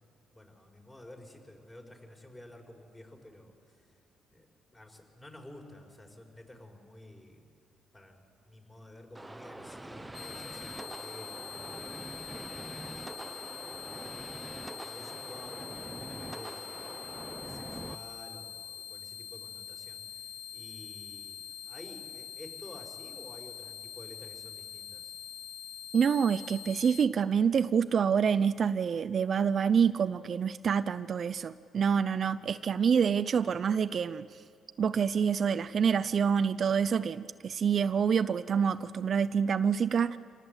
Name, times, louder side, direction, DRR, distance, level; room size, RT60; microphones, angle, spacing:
voice 1, 0.3-3.9 4.3-4.5 4.7-7.5 7.9-20.2 20.5-21.4 21.7-25.1, left 1 dB, 20° left, 4.8 m, -52 dB
sound 1, 9.1-17.9, right 2 dB, 10° right, 0.8 m, -44 dB
sound 2, 10.1-27.1, left 8 dB, 55° left, 0.7 m, -44 dB
voice 2, 25.9-34.3 34.8-40.2, right 7 dB, 50° right, 0.5 m, -27 dB
26.0 x 19.0 x 8.1 m
cardioid pair, 90°, 0 cm